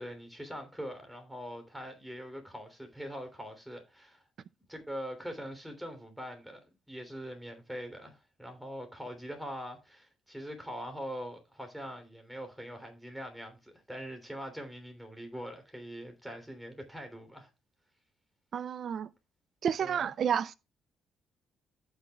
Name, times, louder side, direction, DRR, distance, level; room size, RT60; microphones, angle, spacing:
voice 1, 0.0-4.2 4.7-17.5 19.8-20.1, equal, ahead, 3.2 m, -43 dB
voice 2, 18.5-19.1 19.6-20.5, right 8 dB, 60° right, 0.5 m, -30 dB
14.5 x 6.0 x 2.3 m
cardioid pair, 90°, 0 cm